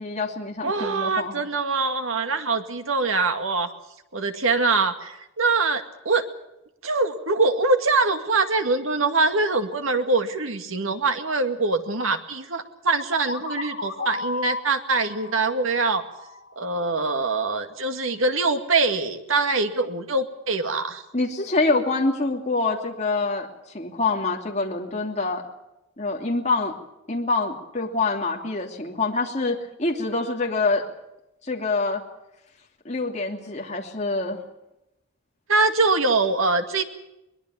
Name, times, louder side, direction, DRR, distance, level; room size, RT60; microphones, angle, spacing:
voice 1, 0.0-1.4 21.1-25.4 26.0-26.8 27.1-30.9 31.4-32.0 32.8-34.4, left 3 dB, 35° left, 0 dB, 2.9 m, -26 dB
voice 2, 0.6-3.7 4.1-6.2 6.8-16.0 16.6-21.0 35.5-36.8, right 3 dB, 75° right, 7 dB, 2.1 m, -23 dB
sound 1, 13.1-16.9, left 3 dB, 55° left, 2.8 m, -34 dB
22.0 x 21.5 x 7.1 m, 0.91 s
head